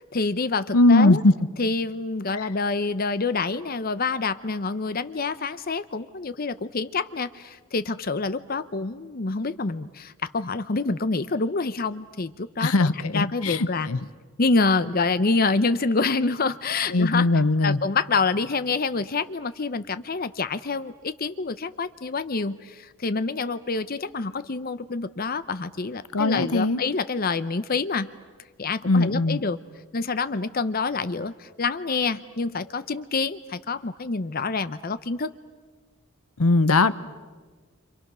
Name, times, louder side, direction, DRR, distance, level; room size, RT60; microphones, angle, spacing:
voice 1, 0.0-1.2 1.6-13.9 14.4-17.3 17.6-28.1 28.6-29.6 29.9-35.3, left 4 dB, 45° left, 13 dB, 0.7 m, -27 dB
voice 2, 0.7-1.3 12.6-14.0 16.9-17.8 26.1-26.8 28.8-29.4 36.4-36.9, left 2 dB, 85° left, 15 dB, 0.9 m, -20 dB
29.5 x 26.5 x 6.1 m, 1.4 s
head